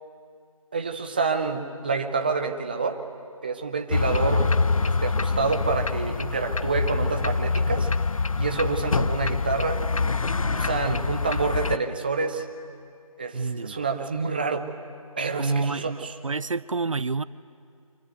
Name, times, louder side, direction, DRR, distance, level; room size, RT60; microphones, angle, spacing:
voice 1, 0.7-3.0 3.4-7.9 8.3-12.5 13.2-14.7 15.2-16.1, right 4 dB, 15° right, 6 dB, 0.7 m, -28 dB
sound 1, 3.9-11.8, left 4 dB, 65° left, 0.7 m, -25 dB
voice 2, 13.3-13.9 15.4-17.2, right 4 dB, 60° right, 18 dB, 0.6 m, -28 dB
25.0 x 22.5 x 9.4 m, 2.4 s
figure-of-eight pair, 165°, 19 cm